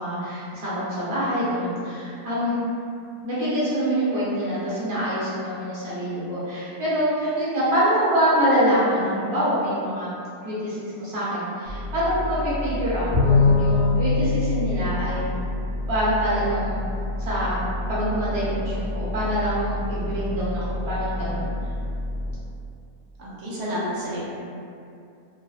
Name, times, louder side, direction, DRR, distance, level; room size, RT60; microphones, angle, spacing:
voice 1, 0.0-2.5 3.2-10.1 10.4-15.3 15.9-16.7 17.2-17.6 17.9-21.5, equal, 30° right, -11 dB, 0.7 m, -25 dB
sound 1, 11.7-22.3, left 1 dB, 50° right, 1.0 m, -30 dB
Bowed string instrument, 13.1-15.8, left 4 dB, 60° left, 0.7 m, -22 dB
voice 2, 23.2-24.3, equal, 80° right, -7 dB, 1.1 m, -30 dB
2.5 x 2.1 x 2.3 m, 2.5 s
omnidirectional pair, 1.5 m